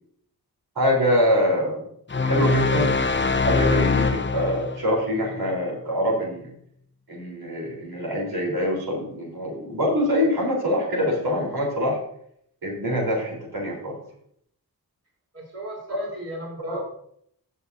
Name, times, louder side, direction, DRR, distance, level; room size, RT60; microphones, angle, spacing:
voice 1, 0.8-1.8 2.2-6.5 7.1-12.0 12.6-14.0 15.9-16.0 16.7-16.8, equal, 75° right, -2 dB, 4.1 m, -24 dB
sound 1, 2.1-4.9, left 4 dB, 30° left, 0.8 m, -22 dB
voice 2, 15.3-16.8, right 1 dB, 40° right, -3 dB, 3.5 m, -35 dB
17.5 x 6.6 x 2.7 m, 0.69 s
cardioid pair, 65°, 38 cm